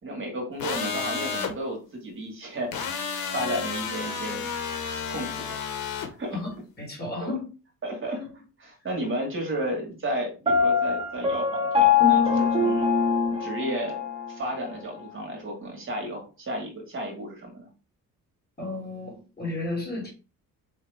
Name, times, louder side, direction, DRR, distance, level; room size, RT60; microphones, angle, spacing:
voice 1, 0.0-4.5 5.1-5.7 6.2-6.4 7.2-7.3 7.8-8.2 8.6-12.9 13.4-14.0 14.3-17.6, right 1 dB, 35° right, 1.4 m, -33 dB
sound 1, 0.6-1.5 2.7-6.1, left 6 dB, 85° left, 1.0 m, -31 dB
voice 2, 6.3-7.5 8.2-8.3 18.6-20.1, left 2 dB, 30° left, 2.2 m, -33 dB
Piano, 10.5-14.3, left 5 dB, 15° right, 1.0 m, -22 dB
4.4 x 2.8 x 3.2 m
cardioid pair, 120°, 35 cm